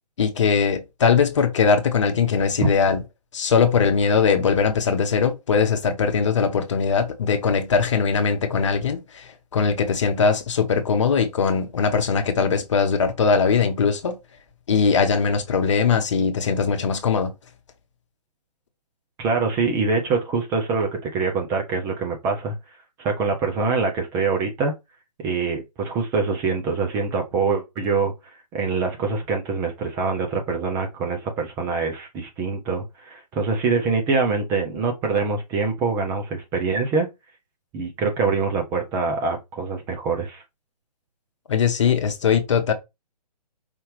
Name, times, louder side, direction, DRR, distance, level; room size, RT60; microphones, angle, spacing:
voice 1, 0.2-3.0 3.3-9.2 9.5-14.2 14.7-17.3 41.5-42.7, left 6 dB, 45° left, 1.1 m, -20 dB
voice 2, 19.2-22.5 23.0-24.7 25.2-28.1 28.5-37.1 37.7-40.4, right 4 dB, 15° right, 0.6 m, -24 dB
5.0 x 2.8 x 3.2 m
figure-of-eight pair, 135°, 21 cm